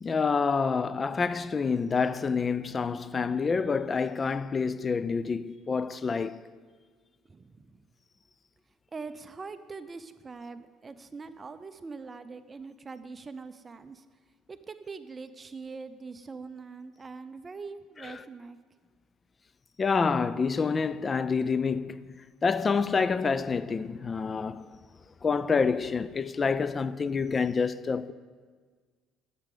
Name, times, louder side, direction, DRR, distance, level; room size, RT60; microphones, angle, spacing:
voice 1, 0.0-6.4 18.0-18.2 19.8-22.1 22.4-24.8 25.2-28.1, left 5 dB, 30° left, 0.3 m, -27 dB
voice 2, 7.3-7.8 8.9-14.0 14.5-18.6, right 4 dB, 30° right, 0.5 m, -43 dB
8.8 x 6.8 x 4.9 m
supercardioid pair, 80°, 0 cm